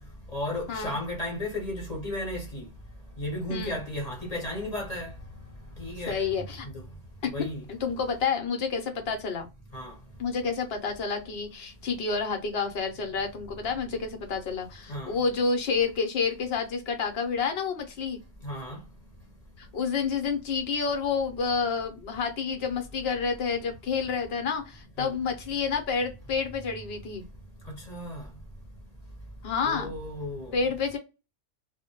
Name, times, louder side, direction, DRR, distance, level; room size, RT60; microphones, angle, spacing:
voice 1, 0.3-2.6 3.2-5.1 5.8-6.2 7.3-7.6 9.7-9.9 14.9-15.1 18.4-18.8 25.0-25.1 27.9-28.2 29.6-30.6, left 1 dB, 35° left, 0.9 m, -34 dB
voice 2, 6.1-6.7 7.7-9.5 10.2-18.2 19.6-27.2 29.4-29.9 30.5-31.0, left 5 dB, 60° left, 0.9 m, -29 dB
2.1 x 2.0 x 2.8 m
omnidirectional pair, 1.2 m